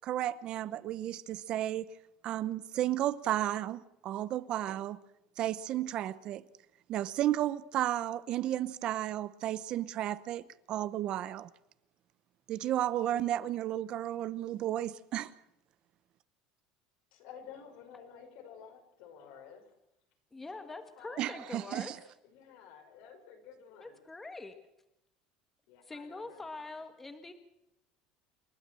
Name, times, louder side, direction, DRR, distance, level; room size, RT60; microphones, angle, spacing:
voice 1, 0.0-1.9 2.2-5.0 5.4-6.4 6.9-11.5 12.5-15.3 21.2-22.0, right 12 dB, 45° right, 0.8 m, -33 dB
voice 2, 17.1-19.6 20.5-21.5 22.2-24.0 25.7-26.8, left 7 dB, 75° left, 5.5 m, -52 dB
voice 3, 20.3-21.9 23.8-24.5 25.9-27.3, left 3 dB, 10° left, 1.6 m, -44 dB
28.0 x 12.5 x 7.7 m
cardioid pair, 155°, 2 cm